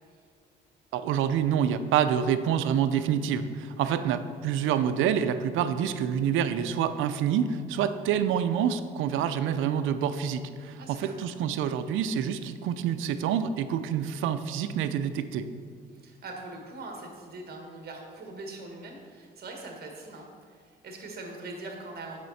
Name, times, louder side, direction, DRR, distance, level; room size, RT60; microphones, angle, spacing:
voice 1, 0.9-15.5, right 8 dB, 85° right, 11 dB, 0.4 m, -27 dB
voice 2, 10.8-11.2 15.9-22.2, right 2 dB, 50° right, 1 dB, 1.6 m, -42 dB
7.5 x 5.7 x 4.1 m, 2.2 s
cardioid pair, 90°, 20 cm